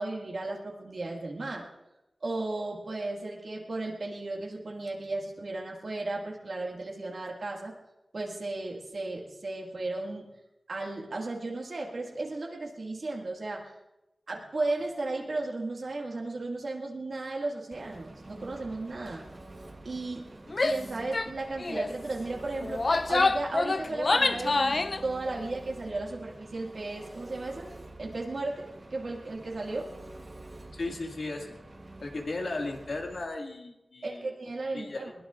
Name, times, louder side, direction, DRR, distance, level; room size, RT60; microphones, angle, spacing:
voice 1, 0.0-1.7 2.2-7.8 8.1-10.3 10.7-13.7 14.3-19.3 19.8-20.3 20.6-27.7 28.0-29.9 34.0-35.1, right 2 dB, 70° right, -1 dB, 1.9 m, -35 dB
Engine, 17.7-33.2, right 2 dB, 40° right, 1.3 m, -47 dB
Female speech woman speaking / Yell, 20.5-20.8 21.1-21.3 21.6-21.9 22.6-25.0, left 3 dB, 50° left, 0.5 m, -26 dB
voice 2, 30.7-31.6 32.0-34.3 34.7-35.1, left 2 dB, 75° left, 1 dB, 2.0 m, -36 dB
21.5 x 19.0 x 2.5 m, 0.96 s
wide cardioid pair, 95°, 0 cm